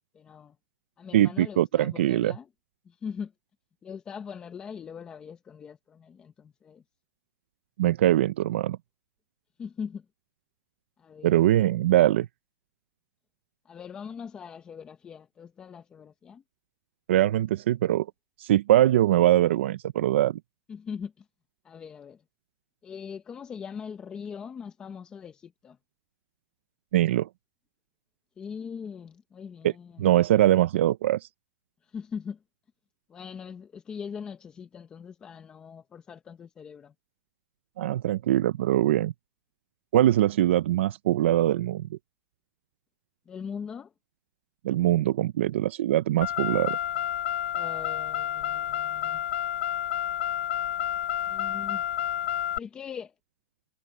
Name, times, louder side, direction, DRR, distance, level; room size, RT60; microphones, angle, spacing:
voice 1, 0.1-0.6 1.0-2.5 2.8-3.3 3.8-6.8 9.6-10.1 11.0-11.8 13.6-16.4 20.7-21.3 21.6-22.2 22.8-25.8 28.4-30.1 31.8-32.4 33.1-36.9 43.3-43.9 47.5-49.2 51.2-51.8 52.6-53.1, left 6 dB, 10° left, 0.7 m, -41 dB
voice 2, 1.1-2.3 7.8-8.8 11.2-12.3 17.1-18.1 18.4-20.4 26.9-27.3 29.6-29.7 30.0-31.3 37.8-39.1 39.9-42.0 44.6-46.8, right 13 dB, 70° right, 0.6 m, -22 dB
Car, 46.2-52.6, left 11 dB, 65° left, 0.7 m, -30 dB
supercardioid pair, 180°, 7 cm